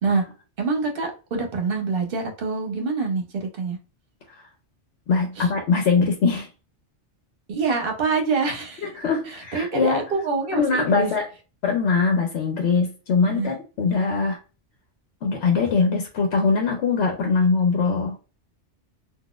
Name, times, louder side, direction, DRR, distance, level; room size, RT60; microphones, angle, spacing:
voice 1, 0.6-3.8 5.4-5.5 7.5-8.9 9.3-11.1 13.3-13.5 13.9-14.2, right 4 dB, 55° right, 3 dB, 1.0 m, -26 dB
voice 2, 5.1-6.5 8.8-10.0 10.5-11.3 11.6-14.4 15.2-18.2, left 4 dB, 70° left, 3 dB, 1.0 m, -22 dB
4.0 x 2.5 x 2.3 m, 0.33 s
omnidirectional pair, 1.2 m